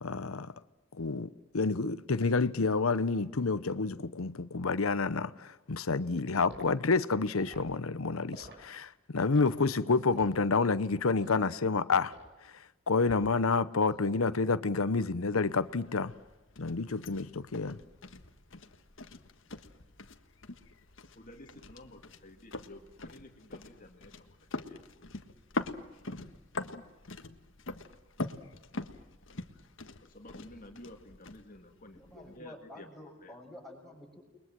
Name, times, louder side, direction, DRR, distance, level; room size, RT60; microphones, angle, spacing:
voice 1, 0.0-0.5 1.0-1.3 1.5-12.1 12.9-16.1 16.6-17.8, left 4 dB, 90° left, 0.9 m, -29 dB
Liquid, 6.5-6.7 7.3-7.7 8.3-8.6 9.2-9.5 10.1-10.4 11.2-11.4 12.1-12.4 13.0-13.5 13.8-14.1, right 2 dB, 55° right, 6.3 m, -50 dB
sound 1, 15.4-32.4, left 2 dB, 65° left, 1.6 m, -43 dB
voice 2, 21.1-25.1 30.0-33.4, left 1 dB, 40° left, 2.3 m, -52 dB
voice 3, 31.9-34.2, left 1 dB, ahead, 6.9 m, -50 dB
30.0 x 22.0 x 7.6 m
head